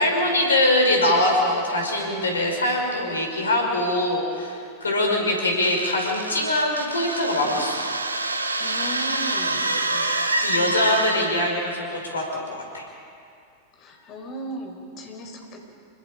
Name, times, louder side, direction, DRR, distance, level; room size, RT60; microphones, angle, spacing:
voice 1, 0.0-4.6 4.8-7.7 9.9-10.0 10.4-12.8, left 1 dB, 75° left, 1 dB, 5.5 m, -23 dB
sound 1, 5.6-11.5, right 2 dB, 80° right, 1.3 m, -27 dB
voice 2, 8.6-9.8 13.8-15.7, equal, 35° left, 2 dB, 4.8 m, -36 dB
27.5 x 25.0 x 5.2 m, 2.4 s
figure-of-eight pair, 90°, 0 cm